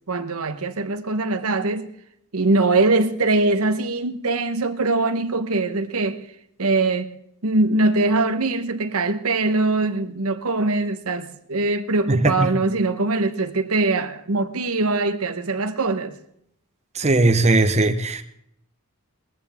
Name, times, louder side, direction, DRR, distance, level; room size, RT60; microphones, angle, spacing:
voice 1, 0.1-1.9 2.3-6.2 6.6-7.1 7.4-16.1, right 3 dB, 75° right, 1.1 m, -22 dB
voice 2, 12.1-12.5 16.9-18.2, right 2 dB, 30° right, 1.0 m, -18 dB
21.0 x 14.5 x 3.6 m
head